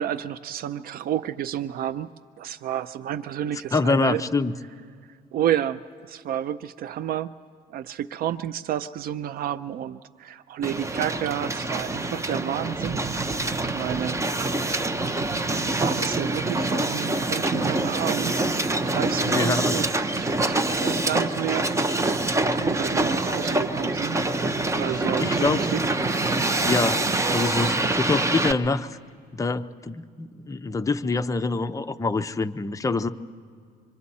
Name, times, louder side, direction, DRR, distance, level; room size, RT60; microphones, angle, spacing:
voice 1, 0.0-2.1 2.4-4.2 5.3-7.3 7.7-14.2 15.4-18.5 18.8-19.9 20.1-22.2 22.5-25.8, right 11 dB, 60° right, 14 dB, 0.4 m, -31 dB
voice 2, 3.7-4.5 19.2-19.8 25.2-25.6 26.6-27.1 27.3-28.9 29.3-33.1, left 3 dB, 20° left, 9 dB, 0.6 m, -25 dB
Hiss, 10.6-28.5, right 2 dB, 15° right, 0.8 m, -25 dB
26.0 x 24.0 x 4.2 m, 2.1 s
cardioid pair, 110°, 17 cm